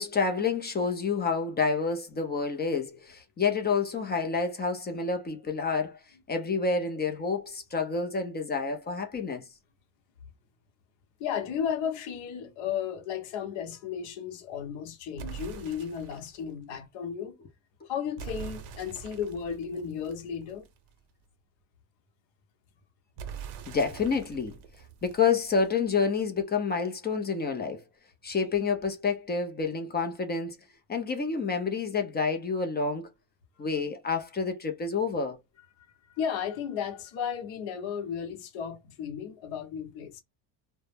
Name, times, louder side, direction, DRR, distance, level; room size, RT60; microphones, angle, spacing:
voice 1, 0.0-6.0 6.3-9.4 23.7-24.6 25.0-27.8 28.2-33.1 33.6-35.4, left 5 dB, 20° left, 0.4 m, -29 dB
voice 2, 11.2-17.4 17.9-20.7 36.1-40.2, left 8 dB, 65° left, 0.9 m, -34 dB
sound 1, 15.2-16.4 18.2-20.9 23.2-25.9, right 7 dB, 60° right, 0.7 m, -43 dB
2.1 x 2.0 x 3.2 m
supercardioid pair, 90°, 49 cm